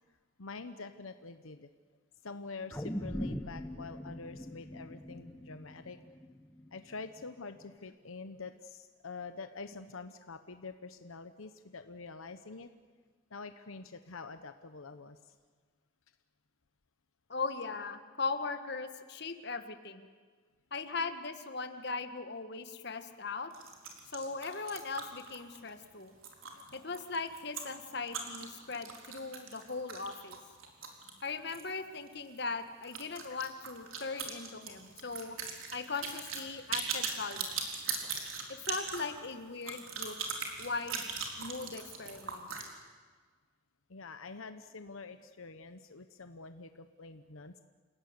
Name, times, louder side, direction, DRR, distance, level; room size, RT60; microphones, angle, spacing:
voice 1, 0.4-1.7 2.2-6.0 6.7-12.7 13.3-15.2 26.5-26.6 43.9-47.6, left 4 dB, 80° left, 9 dB, 1.0 m, -46 dB
sound 1, 2.7-7.2 7.6-7.7, equal, 10° left, 1.0 m, -41 dB
voice 2, 17.3-20.1 20.7-23.5 24.1-26.1 26.7-30.4 31.2-35.4 35.7-37.7 38.5-40.2 40.6-41.0 41.4-42.5, left 4 dB, 50° left, 8 dB, 1.5 m, -39 dB
sound 2, 23.5-31.7 32.0-32.1 32.4-32.5 32.8-42.7, right 5 dB, 80° right, 4.0 m, -40 dB
28.5 x 17.0 x 9.7 m, 1.5 s
head